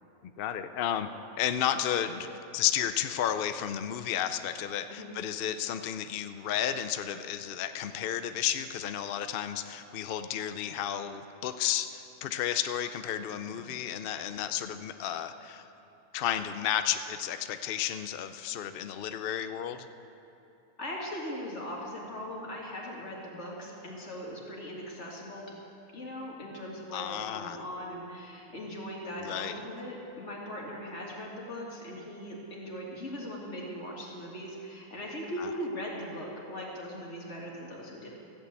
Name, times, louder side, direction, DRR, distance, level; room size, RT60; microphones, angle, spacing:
voice 1, 0.2-1.1 1.4-2.3 2.5-15.6 16.1-19.9 26.9-27.6 29.2-29.6 35.4-35.5, left 10 dB, 70° left, 10 dB, 0.5 m, -32 dB
voice 2, 20.8-25.6 25.9-38.1, equal, 50° left, -3 dB, 2.6 m, -39 dB
14.0 x 8.5 x 8.1 m, 2.9 s
omnidirectional pair, 1.5 m